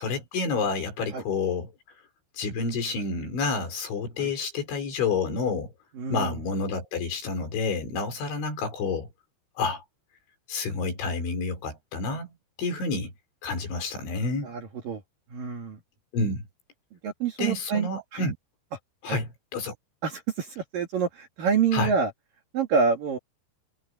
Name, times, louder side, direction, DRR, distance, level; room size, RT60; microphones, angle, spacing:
voice 1, 0.0-1.7 2.4-5.7 6.1-9.1 9.6-9.8 10.5-12.3 12.6-13.1 13.4-14.5 16.1-16.5 17.4-18.3 19.0-19.7 21.7-21.9, left 4 dB, 65° left, 7.6 m, -29 dB
voice 2, 6.0-6.4 14.4-15.0 15.3-15.8 16.9-18.2 19.0-19.2 20.0-22.1 22.5-23.2, right 6 dB, 55° right, 3.2 m, -27 dB
omnidirectional pair, 5.9 m